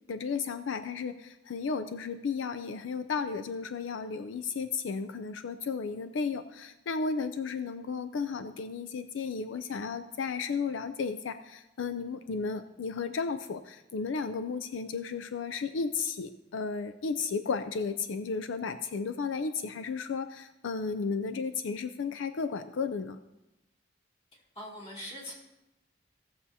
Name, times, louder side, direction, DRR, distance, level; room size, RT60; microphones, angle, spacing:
voice 1, 0.1-23.2, left 5 dB, 90° left, 10 dB, 0.4 m, -34 dB
voice 2, 24.5-25.3, equal, 30° left, -5 dB, 2.9 m, -41 dB
16.5 x 7.1 x 2.8 m, 0.95 s
head